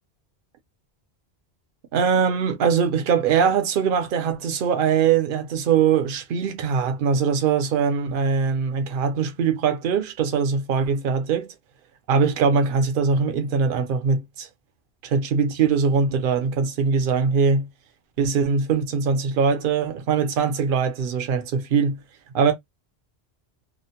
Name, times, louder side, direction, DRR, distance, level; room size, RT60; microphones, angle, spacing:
voice 1, 1.9-11.5 12.1-14.5 15.0-17.7 18.2-22.0 22.3-22.5, right 6 dB, 60° right, 0.8 m, -22 dB
2.4 x 2.1 x 2.8 m
omnidirectional pair, 1.1 m